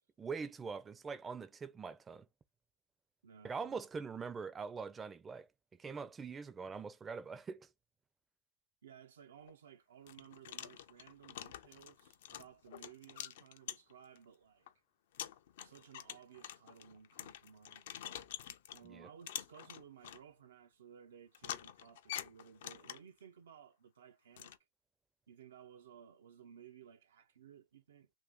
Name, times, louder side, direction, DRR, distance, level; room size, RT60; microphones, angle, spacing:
voice 1, 0.2-2.3 3.4-5.5 5.8-7.7 18.8-19.1, right 5 dB, 15° right, 0.4 m, -43 dB
voice 2, 3.2-3.7 8.8-14.7 15.6-17.9 18.7-24.5 25.3-28.1, right 8 dB, 80° right, 0.4 m, -58 dB
sound 1, 9.4-9.5 10.1-14.2 14.7-14.8 15.1-18.9 19.3-20.2 21.3-23.2 24.4-24.6, left 11 dB, 65° left, 0.4 m, -47 dB
2.7 x 2.6 x 3.5 m
hypercardioid pair, 135°, 0 cm